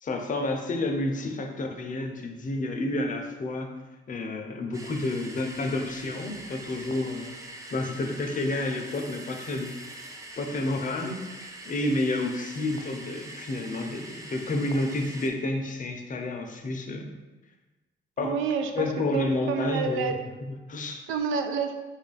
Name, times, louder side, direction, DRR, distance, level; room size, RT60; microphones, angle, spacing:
voice 1, 0.0-3.7 4.1-10.0 10.4-17.2 18.2-18.4 18.8-20.1 20.4-21.0, left 2 dB, 40° left, 3 dB, 0.6 m, -30 dB
sound 1, 4.7-15.3, right 2 dB, 15° right, 0.5 m, -43 dB
voice 2, 18.2-20.2 21.1-21.7, right 6 dB, 85° right, 6 dB, 0.4 m, -29 dB
3.2 x 2.4 x 3.9 m, 1.1 s
cardioid pair, 90°, 20 cm